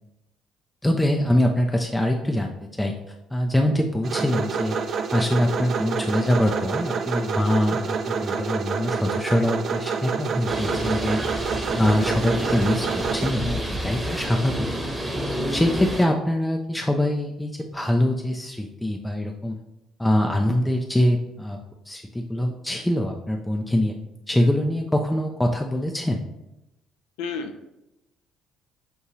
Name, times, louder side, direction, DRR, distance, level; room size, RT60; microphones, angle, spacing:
voice 1, 0.8-2.5 2.8-2.9 3.3-4.8 5.1-11.2 11.7-14.7 15.1-19.6 20.0-21.6 21.9-23.9 24.3-26.3, left 1 dB, 10° left, 2 dB, 0.5 m, -23 dB
sound 1, 4.0-13.3, right 5 dB, 50° right, 0.3 m, -28 dB
Bird, 10.5-16.0, equal, 15° right, 1.1 m, -29 dB
voice 2, 27.2-27.6, left 5 dB, 70° left, 5 dB, 0.5 m, -32 dB
6.1 x 2.7 x 2.9 m, 0.90 s
hypercardioid pair, 50°, 0 cm